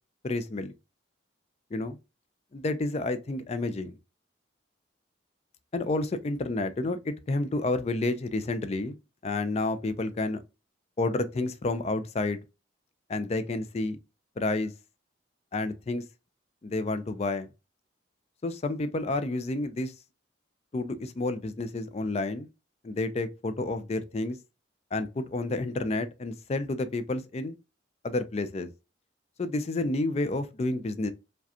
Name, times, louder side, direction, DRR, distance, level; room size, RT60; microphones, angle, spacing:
voice 1, 0.2-0.7 1.7-2.0 2.5-3.9 5.7-8.9 9.2-10.4 11.0-12.4 13.1-14.0 14.4-14.7 15.5-16.0 16.6-17.5 18.4-19.9 20.7-22.5 22.8-24.4 24.9-27.6 28.0-28.7 29.4-31.1, left 2 dB, 35° left, 0.4 m, -30 dB
4.8 x 2.2 x 2.7 m
head